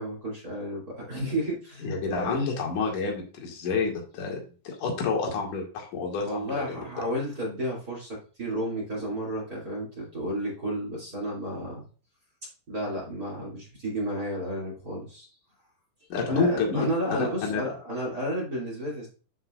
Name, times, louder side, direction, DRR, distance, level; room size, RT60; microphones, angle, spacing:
voice 1, 0.0-2.4 6.2-11.8 12.7-15.3 16.3-19.1, equal, 25° right, -4 dB, 2.3 m, -32 dB
voice 2, 1.8-4.4 4.6-6.9 16.1-17.6, left 4 dB, 50° left, 0 dB, 3.0 m, -29 dB
9.9 x 5.8 x 2.5 m, 0.37 s
omnidirectional pair, 5.3 m